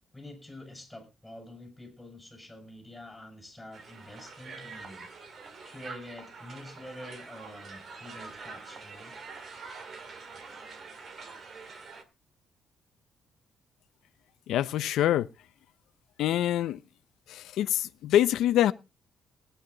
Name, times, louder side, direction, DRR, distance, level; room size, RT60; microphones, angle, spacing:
voice 1, 0.1-5.1 5.6-9.1, left 1 dB, 5° left, 5.5 m, -47 dB
Crowd, 3.7-12.0, right 4 dB, 45° right, 1.9 m, -45 dB
voice 2, 14.5-15.3 16.2-16.8 17.3-18.7, left 12 dB, 85° left, 0.6 m, -25 dB
18.0 x 9.2 x 3.9 m
cardioid pair, 145°, 0 cm